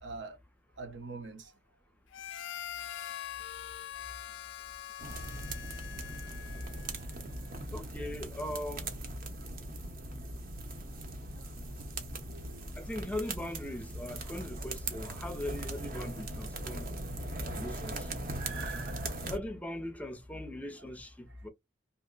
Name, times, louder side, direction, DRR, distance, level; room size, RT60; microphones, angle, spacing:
voice 1, 0.0-0.4 0.8-1.5 6.2-6.5 7.6-7.7 10.8-11.5 12.3-13.0 18.3-19.3, right 4 dB, 90° right, 0.8 m, -46 dB
Harmonica, 2.1-7.1, left 10 dB, 80° left, 0.3 m, -43 dB
sound 1, 5.0-19.4, right 1 dB, 50° right, 0.7 m, -40 dB
voice 2, 7.7-8.9 12.8-16.9 17.5-18.2 19.3-21.5, left 1 dB, 10° left, 0.4 m, -40 dB
2.8 x 2.0 x 3.7 m
head